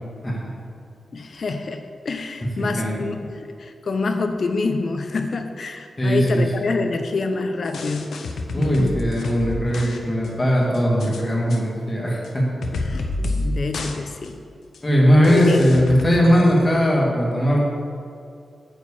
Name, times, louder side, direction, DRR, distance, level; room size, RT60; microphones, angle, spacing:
voice 1, 1.1-8.1 8.6-9.0 12.7-14.4 15.2-15.7, left 3 dB, 50° left, 6 dB, 0.6 m, -26 dB
voice 2, 2.6-3.0 6.0-6.4 8.5-12.4 14.8-17.6, equal, 20° left, -3 dB, 1.7 m, -19 dB
sound 1, 7.7-10.0 10.2-10.3 10.7-11.2 11.5-11.6 12.2-12.3 12.6-13.5 13.7-14.0 14.2-14.3 14.7-14.8 15.2-16.7, left 2 dB, 85° left, 0.7 m, -29 dB
9.0 x 4.6 x 7.1 m, 2.4 s
wide cardioid pair, 145°, 0 cm